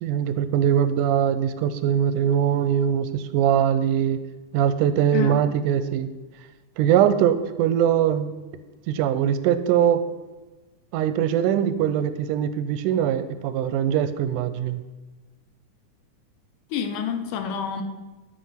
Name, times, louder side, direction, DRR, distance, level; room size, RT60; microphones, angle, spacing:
voice 1, 0.0-4.2 4.5-6.1 6.8-8.3 8.9-10.0 10.9-14.8, right 9 dB, 90° right, 13 dB, 2.1 m, -22 dB
voice 2, 16.7-17.8, left 7 dB, 85° left, 7 dB, 2.4 m, -28 dB
12.0 x 4.6 x 5.7 m, 1.2 s
omnidirectional pair, 3.6 m